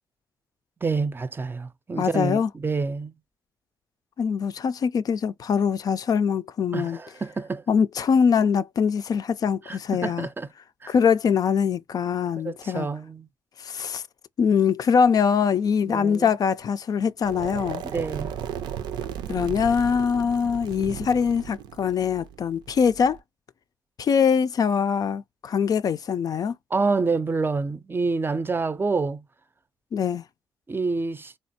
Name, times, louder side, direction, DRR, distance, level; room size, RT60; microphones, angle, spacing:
voice 1, 0.8-3.1 6.7-7.6 9.7-10.5 10.8-10.9 12.4-13.3 15.9-16.3 17.8-18.3 26.7-29.2 30.7-31.3, right 4 dB, 30° right, 0.5 m, -27 dB
voice 2, 2.0-2.5 4.2-7.0 7.7-10.3 10.9-12.9 13.6-14.0 14.4-17.8 19.3-23.2 24.0-26.5 29.9-30.2, left 6 dB, 55° left, 0.4 m, -23 dB
sound 1, 17.2-23.2, right 9 dB, 80° right, 0.5 m, -35 dB
3.3 x 2.2 x 2.7 m
supercardioid pair, 50°, 8 cm